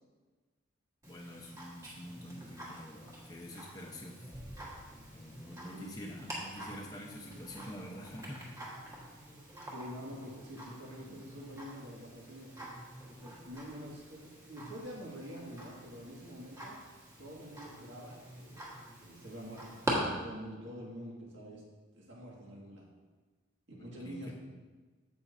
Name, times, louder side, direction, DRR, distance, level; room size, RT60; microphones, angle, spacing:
Tick-tock, 1.0-19.9, right 1 dB, 15° right, 1.6 m, -46 dB
voice 1, 1.1-4.2 5.1-8.4 23.7-24.3, equal, 20° left, -1 dB, 0.9 m, -47 dB
voice 2, 5.6-6.0 9.7-12.5 13.2-16.8 17.2-18.6 19.0-19.9 20.2-21.6 21.9-22.9 23.8-24.3, equal, 60° right, -3 dB, 2.0 m, -46 dB
14.5 x 5.5 x 2.8 m, 1.3 s
head